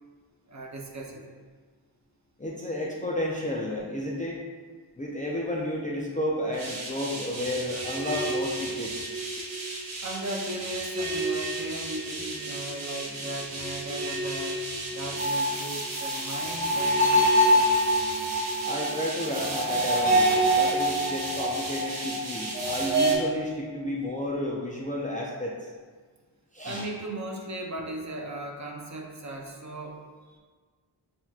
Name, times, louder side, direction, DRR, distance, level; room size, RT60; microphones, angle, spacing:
voice 1, 0.5-1.3 10.0-14.6 14.9-17.7 26.6-30.0, right 1 dB, 35° right, 0 dB, 0.6 m, -37 dB
voice 2, 2.4-4.4 5.0-9.0 18.6-25.6 26.5-26.9, left 1 dB, 15° left, -4 dB, 0.4 m, -32 dB
sound 1, 6.6-23.1, right 1 dB, 85° right, 1.2 m, -27 dB
7.7 x 2.8 x 2.4 m, 1.5 s
wide cardioid pair, 140°, 47 cm